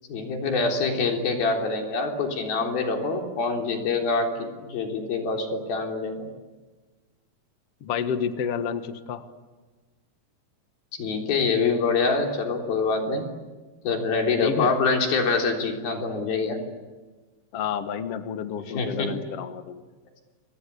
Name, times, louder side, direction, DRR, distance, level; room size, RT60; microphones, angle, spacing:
voice 1, 0.1-6.3 11.0-13.3 13.8-16.6 18.6-19.1, left 4 dB, 85° left, 2 dB, 5.5 m, -25 dB
voice 2, 7.8-9.3 14.4-14.7 17.5-19.8, left 7 dB, 55° left, 9 dB, 2.0 m, -29 dB
29.0 x 24.5 x 8.4 m, 1.3 s
omnidirectional pair, 4.1 m